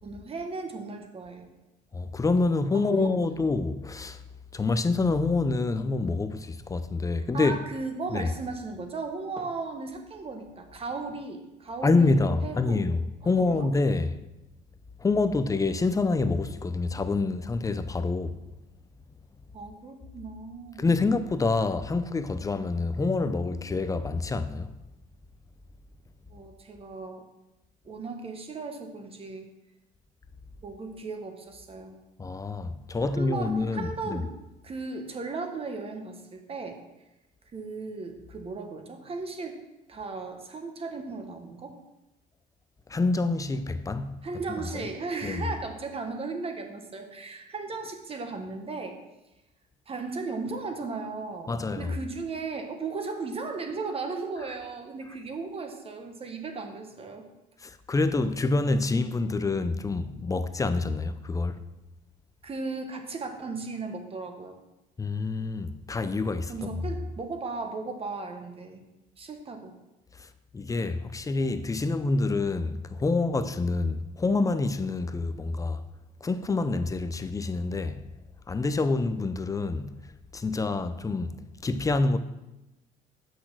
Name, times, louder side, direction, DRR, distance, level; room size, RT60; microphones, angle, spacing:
voice 1, 0.0-1.5 2.7-3.1 7.3-12.8 13.2-13.7 19.5-20.9 26.3-27.2 27.8-29.5 30.6-31.9 33.1-34.3 34.6-36.8 37.5-39.6 39.9-41.8 44.2-49.0 49.9-57.3 62.4-64.6 66.5-68.8 69.2-69.8, right 3 dB, 35° right, 1.5 m, -36 dB
voice 2, 1.9-4.2 4.5-7.6 8.1-8.3 11.8-14.2 15.0-18.3 20.8-24.7 32.2-34.2 42.9-44.2 44.5-44.9 45.2-45.5 51.5-51.9 57.6-61.6 65.0-66.7 70.2-70.3 70.5-75.8 76.2-78.0 78.5-79.9 80.3-81.4 81.6-82.2, left 3 dB, 20° left, 0.6 m, -27 dB
8.3 x 6.1 x 6.2 m
cardioid pair, 110°, 17 cm